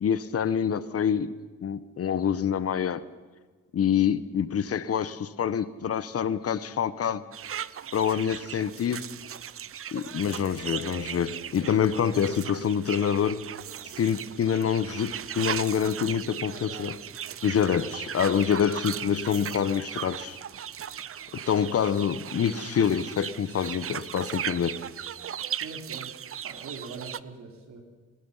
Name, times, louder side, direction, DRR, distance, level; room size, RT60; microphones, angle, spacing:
voice 1, 0.0-1.3 1.6-3.0 3.7-7.2 7.9-9.0 9.9-13.4 14.0-17.0 17.4-20.4 21.3-24.8, left 8 dB, 50° left, 1.2 m, -26 dB
sound 1, 7.3-27.2, right 9 dB, 45° right, 0.8 m, -37 dB
voice 2, 25.6-26.1 26.4-27.8, right 4 dB, 65° right, 4.6 m, -42 dB
26.5 x 20.0 x 5.7 m
cardioid pair, 90°, 30 cm